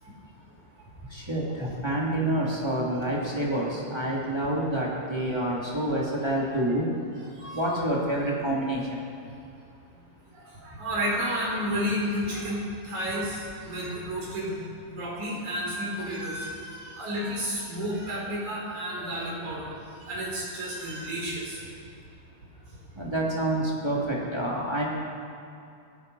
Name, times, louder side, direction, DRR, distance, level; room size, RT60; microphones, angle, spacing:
voice 1, 1.1-6.9 7.5-9.0 22.9-24.9, right 1 dB, 15° right, -5 dB, 0.9 m, -28 dB
voice 2, 7.2-7.8 10.3-14.6 14.9-21.6, equal, 40° right, -5 dB, 5.7 m, -32 dB
24.5 x 9.9 x 5.5 m, 2.6 s
omnidirectional pair, 5.2 m